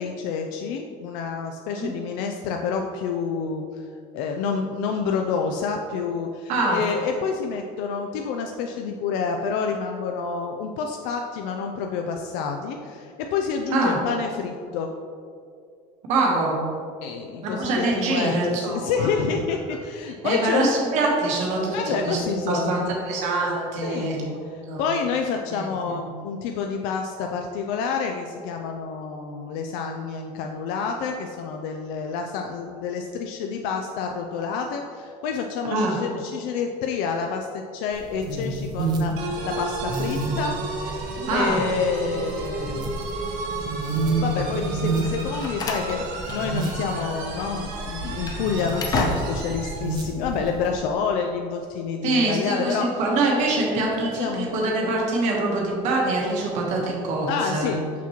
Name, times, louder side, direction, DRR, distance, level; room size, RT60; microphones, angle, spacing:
voice 1, 0.0-3.8 4.1-14.9 17.0-20.7 21.7-22.9 23.8-24.4 24.8-40.6 40.9-42.9 44.2-52.9 53.7-54.5 57.3-57.8, left 5 dB, 85° left, 3 dB, 0.4 m, -28 dB
voice 2, 6.5-6.8 13.7-14.0 16.1-16.6 17.4-19.1 20.2-24.8 25.5-26.0 35.7-36.0 41.2-41.6 52.0-57.7, right 2 dB, 50° right, -2 dB, 1.1 m, -24 dB
sound 1, 37.9-50.8, right 2 dB, 25° right, 0.6 m, -30 dB
sound 2, 39.2-49.9, right 2 dB, 80° right, 1.1 m, -33 dB
Slam, 45.0-47.1 47.3-47.5 48.0-49.6, left 3 dB, 25° left, 0.5 m, -31 dB
5.9 x 5.9 x 2.9 m, 2.4 s
cardioid pair, 180°, 15 cm